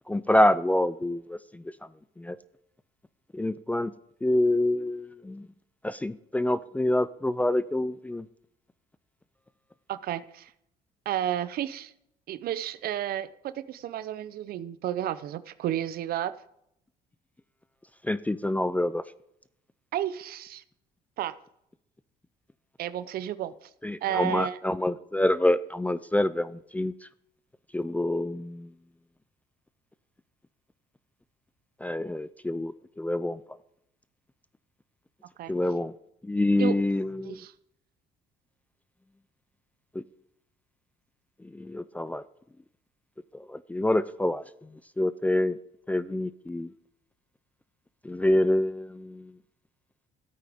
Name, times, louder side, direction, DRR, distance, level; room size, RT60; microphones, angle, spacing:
voice 1, 0.1-1.6 2.2-2.4 3.3-3.9 4.2-5.5 5.8-8.3 18.0-19.0 23.8-26.9 27.7-28.7 31.8-33.4 35.5-35.9 36.2-37.4 41.5-42.2 43.5-44.4 45.0-45.6 45.9-46.7 48.0-49.3, left 1 dB, 10° left, 15 dB, 0.3 m, -26 dB
voice 2, 9.9-10.5 11.1-11.9 12.3-16.3 19.9-20.6 21.2-21.4 22.8-23.7 24.0-24.6 35.4-35.5 36.6-36.8 37.2-37.5, right 11 dB, 65° right, 15 dB, 0.6 m, -32 dB
14.5 x 8.5 x 3.5 m, 0.77 s
cardioid pair, 110°, 17 cm